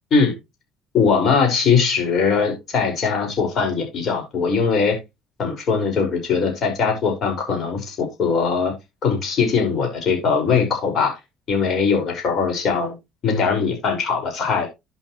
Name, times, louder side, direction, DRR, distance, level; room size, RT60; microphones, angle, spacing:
voice 1, 0.9-5.0 5.4-8.7 9.0-11.1 11.5-13.0 13.2-14.7, left 5 dB, 55° left, 3 dB, 5.5 m, -20 dB
10.5 x 7.7 x 3.2 m, 0.22 s
supercardioid pair, 95°, 0 cm